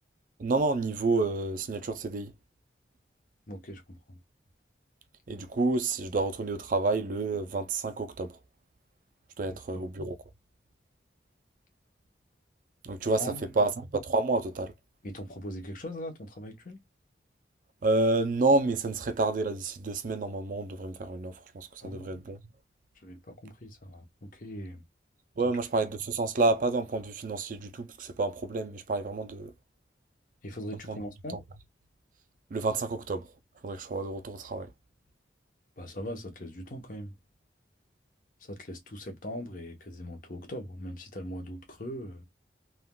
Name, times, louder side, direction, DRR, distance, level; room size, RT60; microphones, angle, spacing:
voice 1, 0.4-2.3 5.3-8.4 9.4-10.2 12.8-14.7 17.8-22.4 25.4-29.5 30.9-31.0 31.3-31.4 32.5-33.3 33.6-34.7, right 3 dB, 45° right, 0.4 m, -29 dB
voice 2, 3.5-4.2 9.4-9.8 13.2-13.7 15.0-16.8 21.8-22.4 23.0-24.8 30.4-31.4 35.8-37.1 38.4-42.2, equal, 50° left, 0.9 m, -41 dB
3.5 x 2.3 x 2.2 m
head